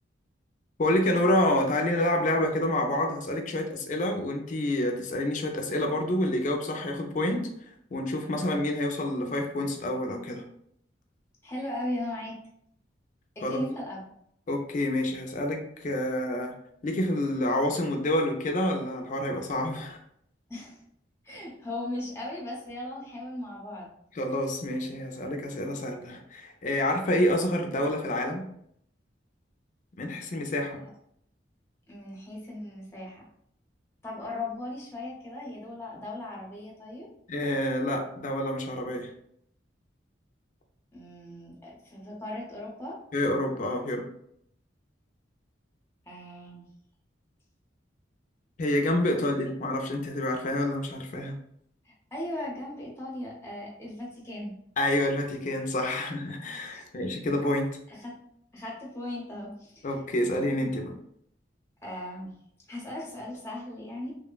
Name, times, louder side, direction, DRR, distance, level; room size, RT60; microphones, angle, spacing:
voice 1, 0.8-7.5 7.9-10.4 13.4-13.6 14.5-16.6 16.8-20.0 24.2-28.4 30.0-30.8 37.3-39.1 43.1-44.0 48.6-51.4 54.8-57.7 59.8-60.9, left 1 dB, 40° left, 3 dB, 0.4 m, -28 dB
voice 2, 11.4-12.4 13.4-14.0 20.5-20.8 21.2-23.9 30.7-30.9 31.9-33.3 34.0-37.1 40.9-43.0 46.1-46.7 49.0-49.2 51.8-54.5 55.9-56.0 56.7-56.9 57.9-58.2 58.5-59.9 60.6-60.7 61.8-62.3 62.7-64.1, left 1 dB, 15° left, -3 dB, 0.7 m, -37 dB
3.1 x 2.0 x 2.2 m, 0.70 s
head